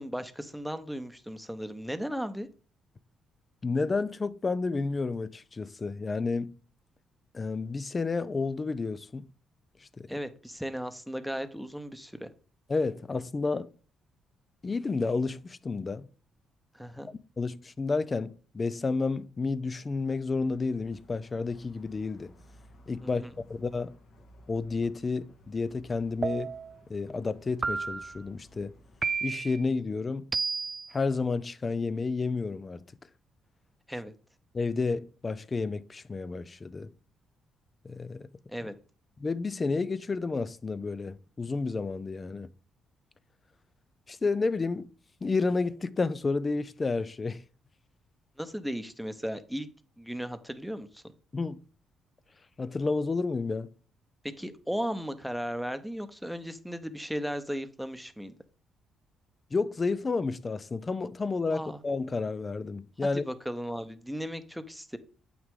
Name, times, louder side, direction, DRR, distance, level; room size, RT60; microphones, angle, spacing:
voice 1, 0.0-2.5 10.1-12.3 16.7-17.1 23.0-23.3 33.9-34.1 38.5-38.7 48.4-49.7 50.0-51.0 54.4-58.3 61.5-61.8 63.0-65.0, equal, ahead, 0.9 m, -36 dB
voice 2, 3.6-6.5 7.3-9.3 10.0-10.1 12.7-13.7 14.6-16.1 17.1-22.3 22.9-23.2 23.5-24.0 24.5-26.5 26.9-28.7 29.2-30.3 30.9-32.8 34.5-36.9 37.8-38.3 39.2-42.5 44.1-44.9 45.2-47.4 51.3-51.6 52.6-53.7 59.5-63.2, left 4 dB, 30° left, 0.5 m, -31 dB
sound 1, 20.3-29.1, left 1 dB, 65° left, 1.7 m, -57 dB
sound 2, 26.2-26.8 27.6-28.2 29.0-29.6 30.3-30.9, right 4 dB, 35° right, 0.4 m, -31 dB
8.1 x 6.0 x 3.7 m
cardioid pair, 90°, 0 cm